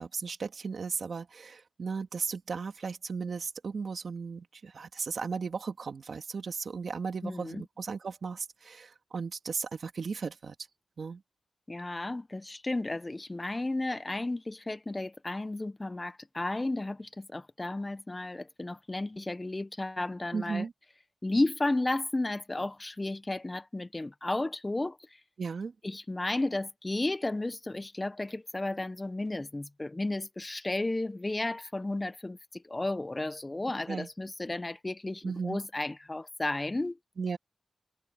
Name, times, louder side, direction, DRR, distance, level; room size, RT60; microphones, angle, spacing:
voice 1, 0.0-10.5 11.0-11.2 20.3-20.7 25.4-25.7 33.9-34.1 35.2-35.6 37.2-37.4, right 5 dB, 75° right, 2.4 m, -36 dB
voice 2, 7.2-7.7 11.7-20.7 21.2-25.0 25.8-37.0, left 2 dB, 30° left, 1.0 m, -33 dB
cardioid pair, 60°, 0 cm